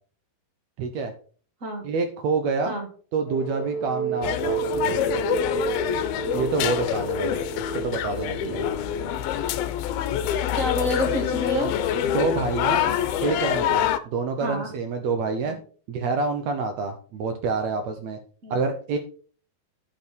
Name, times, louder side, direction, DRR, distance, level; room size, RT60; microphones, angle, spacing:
voice 1, 0.8-1.1 1.8-2.8 3.1-4.6 6.3-8.7 12.1-12.9 13.2-15.5 15.9-18.2 18.5-19.0, right 4 dB, 80° right, 6 dB, 1.5 m, -27 dB
sound 1, 3.3-9.2, right 4 dB, 55° left, 2.0 m, -31 dB
sound 2, 4.2-14.0, left 10 dB, 80° left, 2.5 m, -26 dB
voice 2, 10.5-11.7 14.4-14.7 15.5-15.6 18.4-18.6, left 1 dB, 25° right, 2 dB, 2.2 m, -28 dB
12.0 x 5.4 x 4.6 m, 0.43 s
omnidirectional pair, 4.4 m